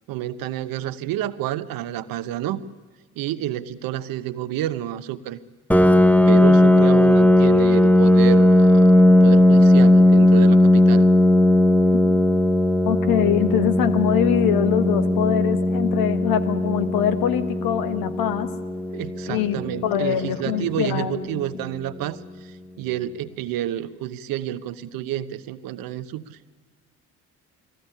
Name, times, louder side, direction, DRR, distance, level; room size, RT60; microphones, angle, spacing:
voice 1, 0.1-2.7 3.2-5.4 6.3-8.9 9.2-11.1 18.9-26.4, right 12 dB, 70° right, 14 dB, 0.9 m, -29 dB
Piano, 5.7-21.1, left 1 dB, 5° left, 0.8 m, -17 dB
voice 2, 12.8-18.5 19.3-21.4, left 10 dB, 75° left, 11 dB, 1.4 m, -23 dB
20.5 x 15.0 x 10.0 m, 1.3 s
hypercardioid pair, 55°, 36 cm